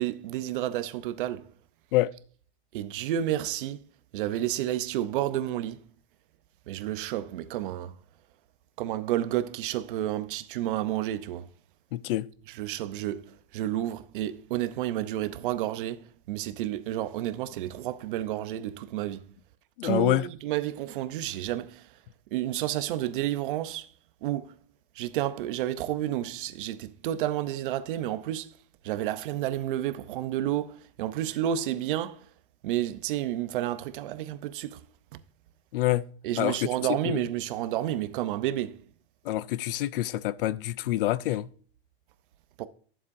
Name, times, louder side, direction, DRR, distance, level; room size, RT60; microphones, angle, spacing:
voice 1, 0.0-1.5 2.7-3.8 4.1-5.8 6.7-7.9 8.8-11.4 12.5-13.3 13.5-19.2 19.8-21.8 22.3-23.9 24.2-24.5 25.0-28.5 28.8-32.2 32.6-34.8 36.2-38.8 42.6-42.7, right 12 dB, 60° right, 0.7 m, -30 dB
voice 2, 11.9-12.3 19.8-20.3 35.7-36.1 36.4-36.7 37.1-37.2 39.3-41.5, left 15 dB, 65° left, 0.5 m, -26 dB
11.0 x 7.3 x 2.6 m
supercardioid pair, 175°, 30 cm